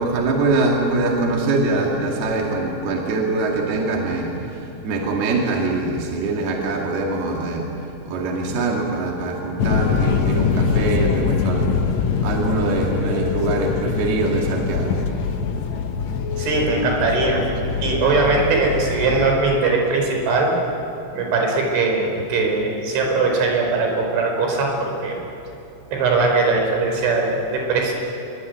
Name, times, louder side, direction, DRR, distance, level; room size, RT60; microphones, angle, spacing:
voice 1, 0.0-7.7 8.1-11.7 12.2-15.0, right 3 dB, 60° right, -1 dB, 4.4 m, -23 dB
sound 1, 9.6-19.4, left 5 dB, 75° left, 1.6 m, -23 dB
voice 2, 16.4-17.4 17.8-20.5 21.1-25.2 25.9-27.9, right 3 dB, 85° right, 1 dB, 7.0 m, -20 dB
28.0 x 22.5 x 9.6 m, 2.8 s
omnidirectional pair, 5.3 m